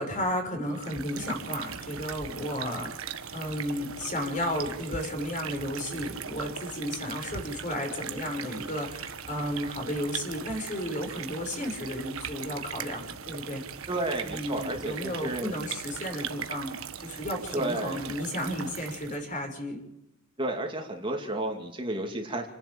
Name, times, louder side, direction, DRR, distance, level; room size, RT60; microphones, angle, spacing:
voice 1, 0.0-13.6 14.2-19.8, equal, 35° left, 4 dB, 5.8 m, -33 dB
sound 1, 0.6-19.3, right 7 dB, 70° right, 1.5 m, -39 dB
voice 2, 13.9-15.5 17.5-18.0 20.4-22.5, right 1 dB, 25° right, 2 dB, 2.6 m, -32 dB
29.0 x 11.5 x 8.8 m, 0.88 s
head